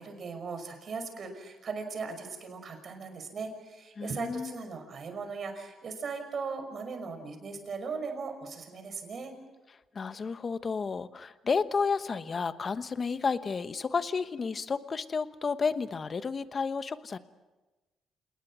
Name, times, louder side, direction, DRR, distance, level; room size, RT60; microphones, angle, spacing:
voice 1, 0.0-9.3, right 4 dB, 50° right, 6 dB, 5.7 m, -38 dB
voice 2, 4.0-4.5 9.9-17.2, left 5 dB, 40° left, 12 dB, 1.1 m, -31 dB
28.0 x 20.0 x 6.3 m, 1.1 s
cardioid pair, 90°, 0 cm